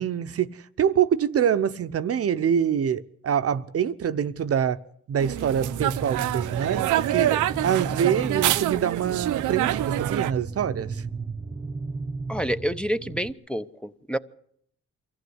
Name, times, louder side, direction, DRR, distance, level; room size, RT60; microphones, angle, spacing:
voice 1, 0.0-4.8 5.1-11.0, right 8 dB, 50° right, 0.9 m, -25 dB
sound 1, 5.2-10.3, right 13 dB, 80° right, 0.8 m, -26 dB
sound 2, 5.3-13.3, right 4 dB, 20° right, 1.2 m, -35 dB
voice 2, 12.3-14.2, equal, 5° left, 0.8 m, -28 dB
24.0 x 15.0 x 8.1 m
cardioid pair, 90°, 30 cm